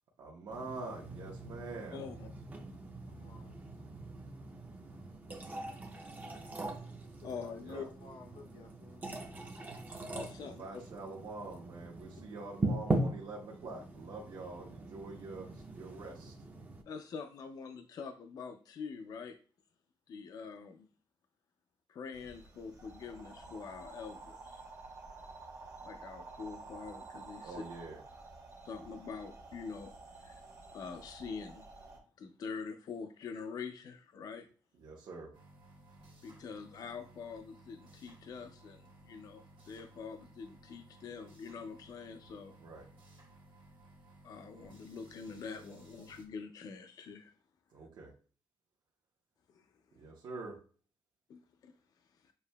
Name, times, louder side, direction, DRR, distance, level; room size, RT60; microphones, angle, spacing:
voice 1, 0.2-2.0 7.6-7.9 10.4-16.3 27.4-28.0 34.8-35.3 42.6-42.8 47.7-48.1 49.9-50.6, right 3 dB, 60° right, -3 dB, 0.8 m, -45 dB
sound 1, 0.5-16.8, right 2 dB, 20° right, 0.5 m, -41 dB
voice 2, 1.9-2.3 7.2-7.9 10.1-10.8 16.9-19.4 20.1-20.9 21.9-24.6 25.8-27.6 28.7-29.9 30.2-30.3 30.7-31.6 32.2-34.5 36.2-42.5 44.2-47.3 49.5-49.6 51.3-51.7 52.2-52.3, left 5 dB, 45° left, 6 dB, 0.3 m, -45 dB
voice 3, 3.0-3.6 6.4-6.5 7.2-9.2, left 2 dB, 75° left, 4 dB, 0.7 m, -54 dB
sound 2, 22.1-32.0, right 3 dB, 35° right, 1.0 m, -51 dB
sound 3, 35.3-46.2, right 1 dB, 75° right, 1.3 m, -59 dB
6.7 x 2.7 x 2.2 m, 0.40 s
wide cardioid pair, 175°, 9 cm